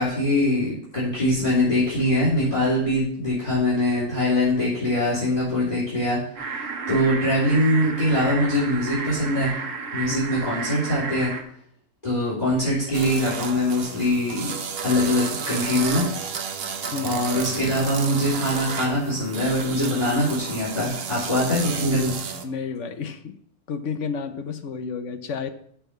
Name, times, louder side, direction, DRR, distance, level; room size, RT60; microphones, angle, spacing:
voice 1, 0.0-6.2 6.9-9.5 9.9-11.3 12.0-14.5 14.8-16.1 17.0-22.2, left 1 dB, 30° left, -9 dB, 3.4 m, -23 dB
sound 1, 6.4-11.4, right 5 dB, 75° right, 1.5 m, -32 dB
sound 2, 12.9-22.5, right 6 dB, 55° right, 0.9 m, -32 dB
voice 2, 22.4-23.4 23.7-25.5, left 6 dB, 70° left, 8 dB, 1.2 m, -31 dB
6.8 x 5.9 x 6.7 m, 0.64 s
omnidirectional pair, 1.3 m